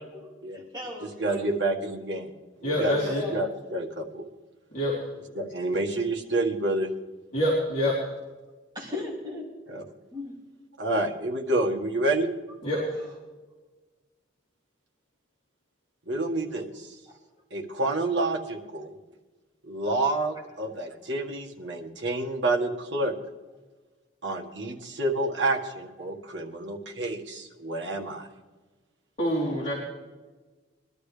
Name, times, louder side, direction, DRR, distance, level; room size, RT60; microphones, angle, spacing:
voice 1, 0.0-1.5 2.8-3.3 8.7-9.5 10.1-10.4 13.0-13.1, left 2 dB, 20° right, -3 dB, 2.7 m, -37 dB
voice 2, 1.0-2.3 2.6-3.0 3.3-4.2 5.4-6.9 9.7-9.8 10.8-12.3 16.1-17.0 17.5-18.9 19.6-23.1 24.2-28.3, right 2 dB, 75° right, 1 dB, 1.8 m, -28 dB
voice 3, 2.6-3.3 4.7-5.0 7.3-8.0 12.6-12.8 29.2-29.7, equal, 40° left, -7 dB, 3.6 m, -26 dB
22.5 x 12.5 x 3.4 m, 1.3 s
head